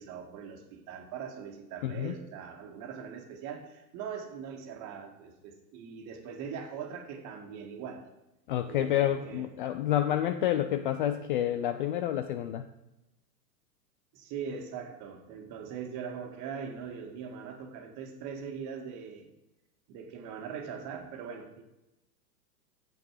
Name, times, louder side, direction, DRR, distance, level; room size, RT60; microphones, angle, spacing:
voice 1, 0.0-8.1 8.7-9.5 14.1-19.3 19.9-21.6, right 7 dB, 35° right, 3 dB, 1.9 m, -41 dB
voice 2, 1.8-2.2 8.5-12.7, left 11 dB, 35° left, 10 dB, 0.4 m, -29 dB
9.4 x 7.6 x 4.9 m, 0.94 s
figure-of-eight pair, 105°, 49 cm